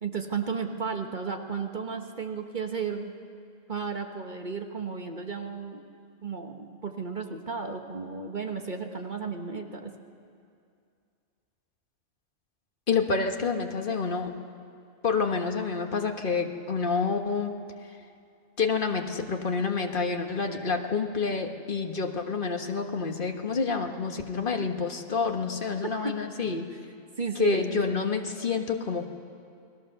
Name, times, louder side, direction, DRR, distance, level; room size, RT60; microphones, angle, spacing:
voice 1, 0.0-3.1 3.7-5.8 6.2-9.9 25.8-26.1 26.7-26.8 27.2-27.8, right 5 dB, 40° right, 4 dB, 1.4 m, -34 dB
voice 2, 12.9-14.3 15.0-17.5 18.6-26.6 27.3-29.1, left 5 dB, 45° left, 4 dB, 1.6 m, -28 dB
29.5 x 19.5 x 6.8 m, 2.4 s
omnidirectional pair, 1.3 m